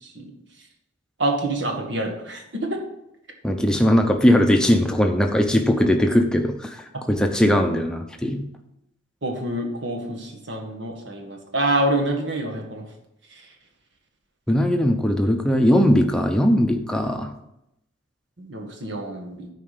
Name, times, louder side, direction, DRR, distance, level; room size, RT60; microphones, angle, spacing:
voice 1, 1.2-2.8 6.9-7.0 9.2-12.8 13.3-13.5 18.4-19.5, right 1 dB, 60° right, 2 dB, 1.7 m, -27 dB
voice 2, 3.4-8.5 14.5-17.3, equal, 5° left, 4 dB, 0.8 m, -19 dB
9.2 x 4.9 x 6.7 m, 0.83 s
head